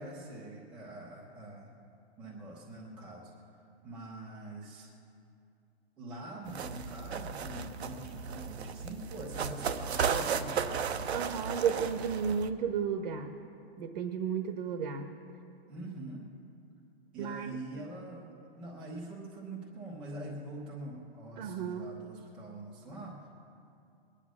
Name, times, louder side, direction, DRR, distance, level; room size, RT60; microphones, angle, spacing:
voice 1, 0.0-1.7 2.2-4.9 6.0-11.1 15.7-16.2 17.1-23.3, right 2 dB, 5° right, -5 dB, 0.5 m, -44 dB
sound 1, 6.4-12.5, right 6 dB, 80° right, 0.9 m, -35 dB
voice 2, 11.1-13.3 13.8-15.1 17.2-17.6 21.4-21.9, right 7 dB, 50° right, 6 dB, 1.1 m, -33 dB
20.5 x 10.0 x 6.1 m, 2.6 s
hypercardioid pair, 175°, 32 cm